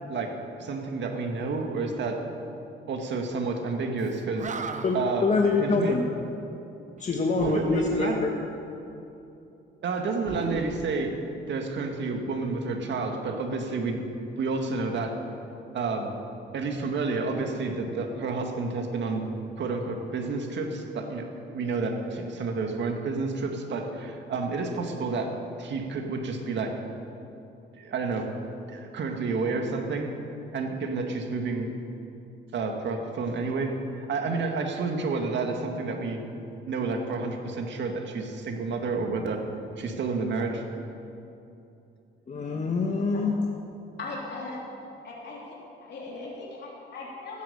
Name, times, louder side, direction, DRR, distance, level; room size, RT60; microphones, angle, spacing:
voice 1, 0.6-2.2 2.9-4.7 4.9-5.3 5.6-6.0 7.4-8.2 9.8-11.1 11.5-14.0 14.4-15.2 15.7-16.1 16.5-19.3 19.6-25.3 25.6-26.8 27.7-28.3 28.7-30.1 30.5-31.7 32.5-36.2 36.7-39.4 39.8-40.6, right 3 dB, 65° right, 3 dB, 2.0 m, -30 dB
Animal, 4.0-4.1 4.4-5.2 7.4-8.2 10.2-11.6, right 4 dB, 40° right, 0.9 m, -36 dB
voice 2, 4.8-6.0 7.0-8.3 42.3-43.4, left 3 dB, 40° left, 1 dB, 1.4 m, -25 dB
voice 3, 44.0-44.6 45.0-47.4, left 3 dB, 60° left, -4 dB, 3.5 m, -39 dB
15.0 x 10.5 x 7.0 m, 2.8 s
cardioid pair, 90°, 20 cm